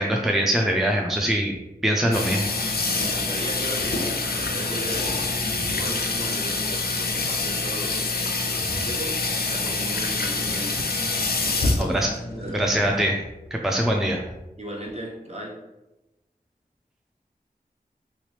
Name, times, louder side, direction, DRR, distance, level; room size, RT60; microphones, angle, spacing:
voice 1, 0.0-1.6 1.8-2.5 11.8-12.1 12.5-13.2 13.5-14.2, right 1 dB, ahead, 1 dB, 0.4 m, -23 dB
Water tap faucet / Sink (filling or washing), 2.1-13.0, left 3 dB, 75° left, 0.5 m, -26 dB
voice 2, 2.8-8.1 8.5-9.2 9.4-10.8 11.4-12.0 12.3-12.8 14.6-15.6, right 1 dB, 45° right, -2 dB, 1.0 m, -36 dB
3.1 x 2.9 x 3.2 m, 0.95 s
wide cardioid pair, 60°, 16 cm